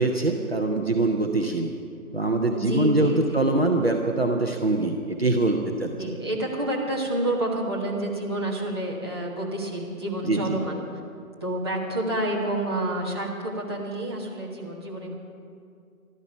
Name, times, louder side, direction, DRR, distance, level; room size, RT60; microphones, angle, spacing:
voice 1, 0.0-1.7 2.1-5.9 10.2-10.6, right 2 dB, 45° right, 2 dB, 0.9 m, -23 dB
voice 2, 2.5-3.2 5.7-10.8 11.4-15.1, right 1 dB, 15° right, -5 dB, 1.2 m, -29 dB
14.5 x 12.5 x 5.8 m, 2.3 s
figure-of-eight pair, 160°, 44 cm